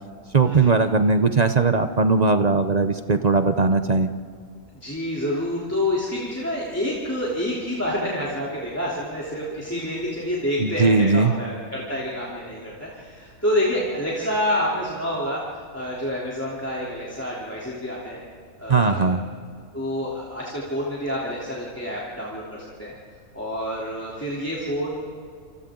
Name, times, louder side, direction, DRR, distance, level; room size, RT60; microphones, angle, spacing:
voice 1, 0.3-4.1 10.6-11.3 18.7-19.2, right 4 dB, 40° right, 8 dB, 0.6 m, -19 dB
voice 2, 4.8-15.4 15.7-18.2 18.6-19.1 19.7-22.9 23.3-25.1, left 1 dB, 10° left, -6 dB, 3.3 m, -28 dB
28.5 x 28.0 x 3.9 m, 2.1 s
omnidirectional pair, 1.5 m